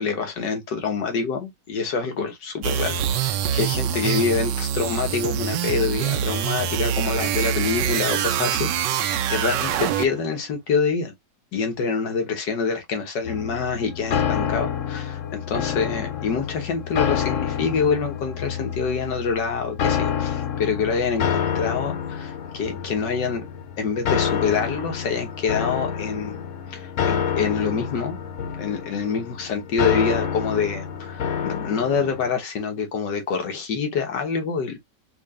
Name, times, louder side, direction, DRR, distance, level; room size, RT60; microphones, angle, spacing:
voice 1, 0.0-11.1 11.5-23.4 23.8-26.4 26.7-28.2 28.6-34.8, left 5 dB, 85° left, 1.8 m, -26 dB
sound 1, 2.6-10.3, right 9 dB, 90° right, 1.2 m, -25 dB
sound 2, 13.2-32.3, left 8 dB, 60° left, 0.9 m, -28 dB
4.5 x 2.9 x 2.4 m
omnidirectional pair, 1.8 m